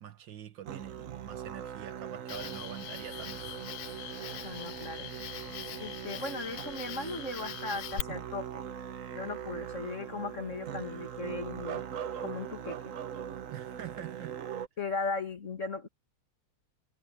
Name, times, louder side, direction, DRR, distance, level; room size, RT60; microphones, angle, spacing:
voice 1, 0.0-3.6 13.5-14.4, right 9 dB, 65° right, 1.6 m, -45 dB
Musical instrument, 0.6-14.7, right 9 dB, 50° right, 1.0 m, -41 dB
Cricket, 2.3-8.0, left 14 dB, 75° left, 1.2 m, -42 dB
voice 2, 4.4-5.1 5.8-8.6 9.1-11.8 12.2-12.9 14.8-15.9, left 3 dB, 35° left, 2.5 m, -37 dB
omnidirectional pair, 2.2 m